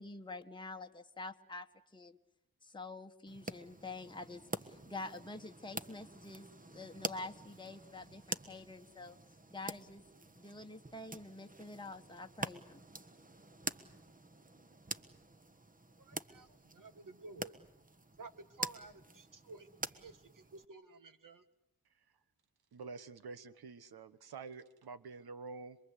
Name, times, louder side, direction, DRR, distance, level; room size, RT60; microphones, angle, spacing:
voice 1, 0.0-2.2 2.6-9.2 9.5-10.0 10.4-12.8, left 2 dB, 10° left, 4 dB, 1.3 m, -47 dB
sound 1, 3.3-20.7, right 2 dB, 20° right, 1.3 m, -46 dB
voice 2, 16.0-17.6 18.2-21.4, right 3 dB, 60° right, 9 dB, 2.1 m, -53 dB
voice 3, 22.7-25.8, right 4 dB, 85° right, 13 dB, 1.4 m, -48 dB
27.0 x 22.5 x 8.3 m, 0.83 s
cardioid pair, 75°, 37 cm